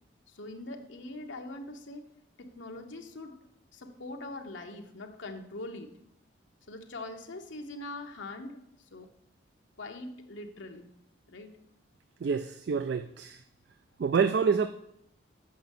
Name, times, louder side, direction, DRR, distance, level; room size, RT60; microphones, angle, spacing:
voice 1, 0.3-2.1 2.4-3.3 3.7-5.9 6.7-8.6 8.9-9.1 9.8-10.9 11.3-11.6, left 2 dB, 80° left, 3 dB, 1.0 m, -42 dB
voice 2, 12.2-13.4 14.0-14.7, right 6 dB, 60° right, 10 dB, 0.3 m, -27 dB
7.7 x 5.6 x 5.4 m, 0.76 s
head